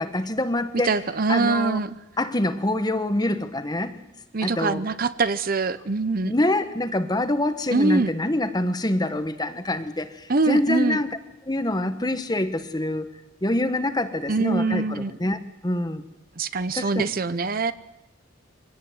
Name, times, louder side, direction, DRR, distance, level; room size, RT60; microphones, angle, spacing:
voice 1, 0.0-0.9 1.3-1.8 2.2-3.9 4.4-4.8 6.2-11.1 11.4-13.1 13.4-15.4 15.6-16.0 16.7-17.1, left 1 dB, 20° left, 9 dB, 1.3 m, -25 dB
voice 2, 0.8-2.0 4.3-6.3 7.7-8.1 10.3-11.0 14.3-15.1 16.4-17.7, right 3 dB, 45° right, 14 dB, 0.7 m, -23 dB
24.0 x 17.5 x 9.4 m, 1.0 s
head